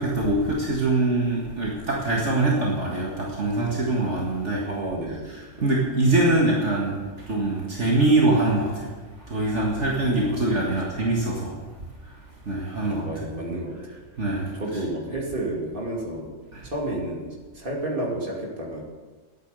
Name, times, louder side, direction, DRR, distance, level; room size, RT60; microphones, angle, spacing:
voice 1, 0.0-4.7 5.6-7.0 7.3-9.0 9.3-11.6 12.5-13.0 14.2-14.5 16.5-16.7, right 2 dB, 60° right, -3 dB, 2.1 m, -23 dB
voice 2, 4.7-5.3 5.6-5.7 10.3-10.6 12.8-13.8 14.5-16.3 16.6-18.8, right 1 dB, 40° right, -2 dB, 2.7 m, -31 dB
11.5 x 9.0 x 6.8 m, 1.3 s
omnidirectional pair, 1.4 m